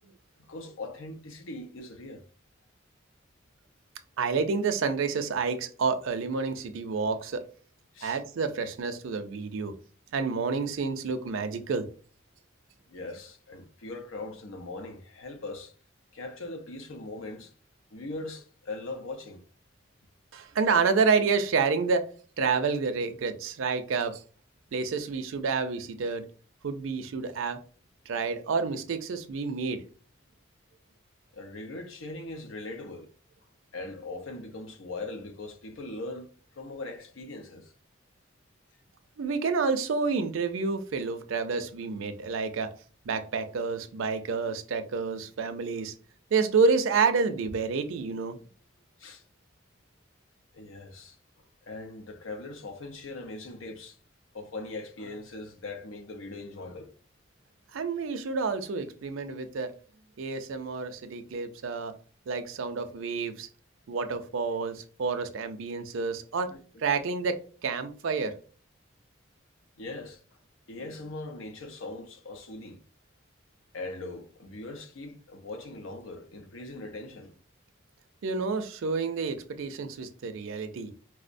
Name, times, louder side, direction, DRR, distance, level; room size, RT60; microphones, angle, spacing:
voice 1, 0.4-2.2 7.9-8.2 12.9-15.7 16.1-17.5 17.9-19.4 31.3-33.1 33.7-36.3 36.6-37.7 49.0-49.2 50.5-54.0 54.3-56.9 66.4-66.9 69.8-70.4 70.7-72.8 73.7-77.4, left 2 dB, 90° left, 0.6 m, -40 dB
voice 2, 4.2-7.4 8.0-9.7 10.1-11.9 20.3-22.0 22.4-24.2 24.7-26.2 26.6-27.6 28.1-29.8 39.2-42.7 43.1-45.9 46.3-48.4 57.7-59.7 60.2-61.9 62.3-63.5 63.9-66.5 66.8-68.3 78.2-80.9, right 4 dB, 85° right, 0.4 m, -29 dB
4.5 x 2.1 x 2.5 m
head